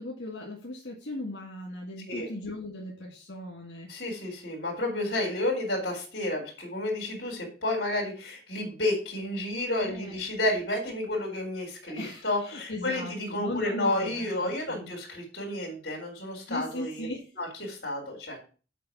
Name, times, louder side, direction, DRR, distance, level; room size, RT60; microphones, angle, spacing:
voice 1, 0.0-3.9 7.4-7.5 9.8-10.2 11.9-14.9 16.5-17.3, left 1 dB, 75° left, -1 dB, 2.0 m, -38 dB
voice 2, 3.9-17.1 17.4-18.4, left 1 dB, 55° left, -2 dB, 3.1 m, -31 dB
7.5 x 4.7 x 7.0 m, 0.37 s
head